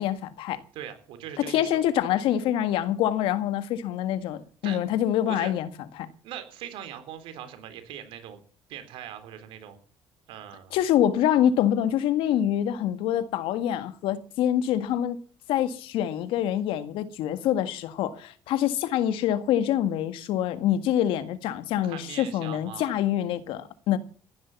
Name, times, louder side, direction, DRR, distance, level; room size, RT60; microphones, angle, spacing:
voice 1, 0.0-0.6 1.4-5.7 6.0-6.1 10.7-15.2 15.5-24.0, left 11 dB, 80° left, 1.8 m, -25 dB
voice 2, 0.7-1.7 4.6-4.8 5.3-5.5 6.2-8.4 8.7-9.8 10.3-10.8 21.8-22.9, right 10 dB, 80° right, 3.8 m, -41 dB
15.5 x 11.0 x 7.3 m
cardioid pair, 110°, 9 cm